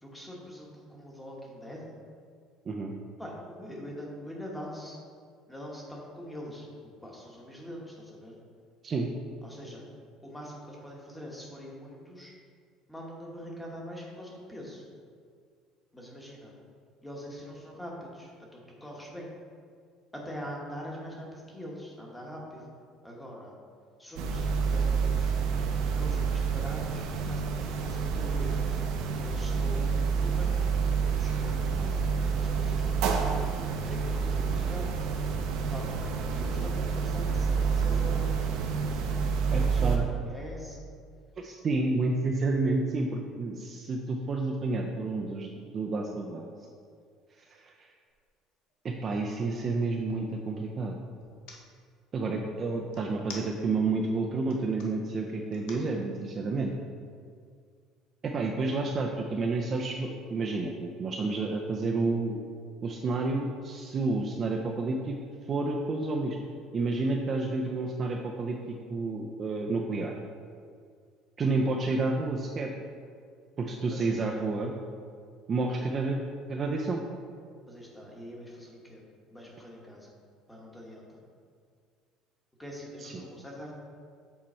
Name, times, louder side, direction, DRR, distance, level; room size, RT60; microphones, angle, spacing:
voice 1, 0.0-1.9 3.2-5.0 5.5-6.7 7.0-8.4 9.4-9.8 10.2-12.3 12.9-14.8 15.9-16.5 17.0-19.3 20.1-22.7 23.0-23.5 24.0-25.4 26.0-27.5 27.8-28.8 29.2-30.7 31.1-31.9 32.1-32.9 33.9-35.0 35.7-38.6 39.5-40.9 71.4-71.5 73.9-74.6 75.9-76.0 77.7-79.0 79.3-80.1 80.5-81.2 82.6-83.7, equal, 5° left, -2 dB, 1.0 m, -43 dB
sound 1, 24.2-40.0, right 5 dB, 70° right, 0.7 m, -28 dB
voice 2, 39.5-40.0 41.4-45.5 45.7-46.5 47.5-47.7 48.8-51.0 52.1-56.7 58.2-62.4 62.8-65.2 65.5-66.4 66.7-68.6 68.9-70.1 71.4-72.7 73.6-74.7 75.5-76.2 76.5-77.0 83.0-83.2, right 3 dB, 25° right, 1 dB, 0.4 m, -30 dB
sound 2, 48.1-48.3 48.7-50.3 51.2-51.6 52.9-53.9 54.3-54.9 55.5-55.9, left 4 dB, 75° left, 1.1 m, -47 dB
7.5 x 4.4 x 4.3 m, 2.1 s
cardioid pair, 170°, 0 cm